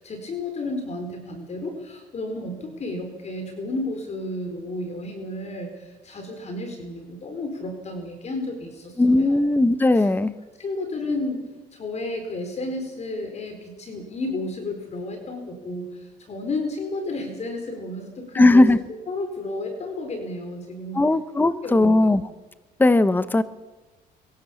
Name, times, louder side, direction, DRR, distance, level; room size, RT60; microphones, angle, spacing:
voice 1, 0.0-9.4 9.9-10.1 10.6-11.4 11.7-18.7 19.1-21.0 21.4-22.0, left 2 dB, 40° left, 5 dB, 4.4 m, -32 dB
voice 2, 9.0-10.3 18.3-18.8 20.9-22.2 22.8-23.4, left 2 dB, 10° left, 13 dB, 0.9 m, -18 dB
22.0 x 18.0 x 7.2 m, 1.2 s
cardioid pair, 110°, 17 cm